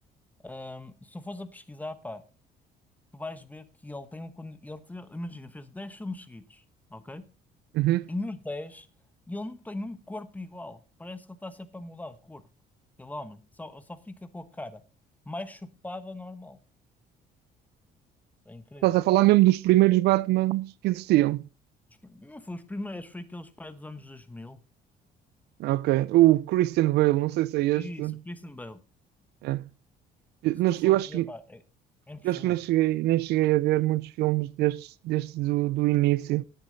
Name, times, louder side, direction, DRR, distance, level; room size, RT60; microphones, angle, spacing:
voice 1, 0.4-2.2 3.1-6.6 6.9-7.2 8.1-8.9 9.3-12.4 13.0-14.8 15.2-16.6 18.4-18.9 22.0-24.6 27.7-28.8 30.8-31.6 32.1-32.6, left 2 dB, 10° left, 1.1 m, -40 dB
voice 2, 7.7-8.1 18.8-21.4 25.6-28.2 29.4-29.6 30.4-31.3 32.2-36.4, right 17 dB, 80° right, 0.4 m, -23 dB
10.0 x 8.4 x 4.0 m
cardioid pair, 110°, 17 cm